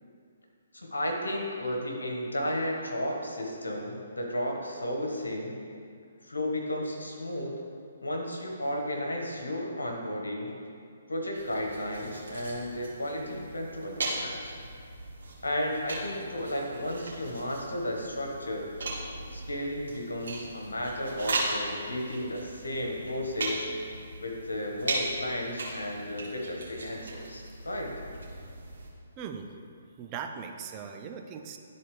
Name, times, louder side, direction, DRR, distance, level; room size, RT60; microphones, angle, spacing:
voice 1, 0.7-5.5 6.3-7.5 8.0-10.5 11.1-14.5 15.4-18.7 19.3-23.7 24.2-27.9, left 1 dB, 85° left, 0 dB, 1.5 m, -33 dB
sound 1, 11.3-28.9, right 2 dB, 70° right, 1.8 m, -38 dB
voice 2, 29.2-29.5 30.0-31.6, right 6 dB, 30° right, 5 dB, 0.6 m, -39 dB
11.5 x 4.2 x 3.3 m, 2.3 s
figure-of-eight pair, 140°, 0 cm